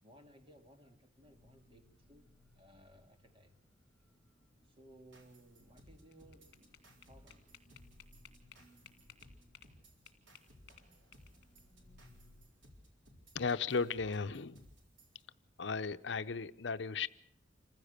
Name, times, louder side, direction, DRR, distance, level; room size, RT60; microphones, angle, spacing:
voice 1, 0.0-3.6 4.6-7.7, right 1 dB, 30° right, 2.2 m, -61 dB
sound 1, 1.2-12.5, left 1 dB, 5° left, 4.6 m, -66 dB
sound 2, 5.1-15.2, equal, 80° right, 3.9 m, -62 dB
sound 3, 5.9-9.7 10.1-11.6, left 10 dB, 60° left, 2.1 m, -59 dB
voice 2, 13.3-14.6 15.6-17.1, left 5 dB, 75° left, 0.7 m, -35 dB
27.5 x 15.5 x 6.6 m
head